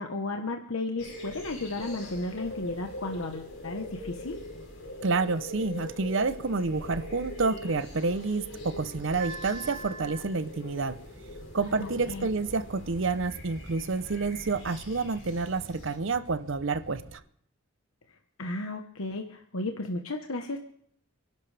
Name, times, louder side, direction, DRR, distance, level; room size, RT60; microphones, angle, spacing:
voice 1, 0.0-4.4 11.8-12.3 18.4-20.6, left 2 dB, 90° left, 1.2 m, -34 dB
sound 1, 1.0-16.0, left 1 dB, 75° left, 5.3 m, -42 dB
voice 2, 5.0-11.0 11.5-17.2, right 3 dB, 60° right, 0.7 m, -29 dB
sound 2, 8.5-17.2, right 2 dB, 85° right, 5.9 m, -47 dB
29.5 x 11.5 x 3.4 m
head